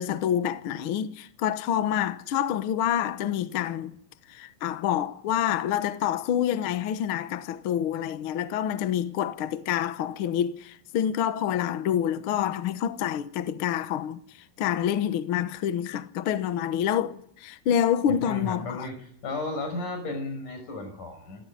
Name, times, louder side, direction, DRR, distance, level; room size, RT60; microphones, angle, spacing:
voice 1, 0.0-4.0 4.3-14.2 14.6-18.9, left 10 dB, 85° left, 1.1 m, -27 dB
voice 2, 18.1-19.0 19.2-21.5, left 2 dB, 60° left, 7.2 m, -34 dB
29.0 x 13.5 x 9.9 m
omnidirectional pair, 4.1 m